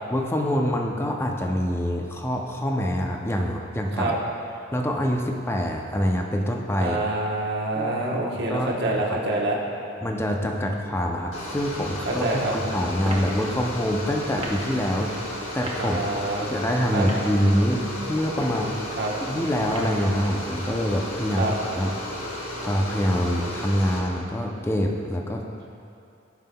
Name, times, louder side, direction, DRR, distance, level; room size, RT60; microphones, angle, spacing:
voice 1, 0.1-4.1 4.7-7.0 7.8-8.1 8.5-8.7 9.1-9.2 10.0-16.0 16.4-17.8 18.1-18.7 19.3-21.9 22.6-25.4, equal, 15° left, 1 dB, 0.5 m, -25 dB
voice 2, 6.8-9.6 12.0-12.5 15.8-16.5 16.9-17.1 19.0-19.1 21.4-21.5, right 2 dB, 60° right, -3 dB, 1.1 m, -26 dB
sound 1, 11.3-24.0, left 1 dB, 70° left, 1.5 m, -34 dB
sound 2, 13.0-13.3 14.3-14.6 15.6-15.8 16.9-17.3 18.2-18.6 19.7-20.0, right 1 dB, 30° right, 1.1 m, -33 dB
16.5 x 5.5 x 2.2 m, 2.6 s
head